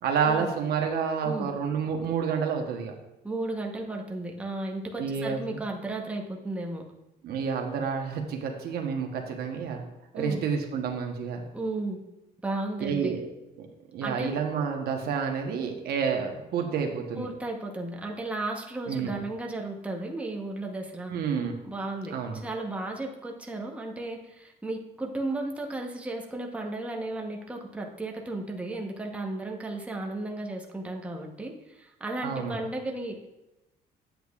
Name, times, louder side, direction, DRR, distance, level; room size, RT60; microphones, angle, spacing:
voice 1, 0.0-2.9 5.0-5.4 7.2-9.8 10.1-11.4 12.8-13.2 13.6-13.7 13.9-17.3 18.9-19.1 21.1-21.5 22.1-22.4 32.2-32.7, right 6 dB, 65° right, 3 dB, 1.0 m, -29 dB
voice 2, 3.2-6.8 10.1-10.4 11.5-12.0 12.4-13.2 14.0-14.3 17.2-21.1 21.6-33.3, right 2 dB, 5° right, 0 dB, 0.9 m, -34 dB
8.2 x 7.7 x 2.4 m, 0.96 s
cardioid pair, 110°, 17 cm